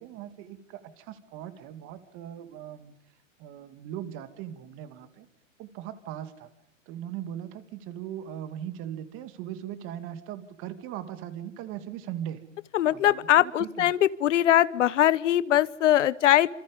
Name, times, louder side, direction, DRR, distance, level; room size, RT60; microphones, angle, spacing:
voice 1, 0.0-3.0 3.4-5.3 5.6-6.5 6.9-12.4 12.9-13.9, right 11 dB, 30° right, 11 dB, 2.4 m, -39 dB
voice 2, 12.7-16.5, left 12 dB, 65° left, 19 dB, 1.1 m, -21 dB
27.5 x 27.0 x 5.4 m, 0.72 s
hypercardioid pair, 140°, 39 cm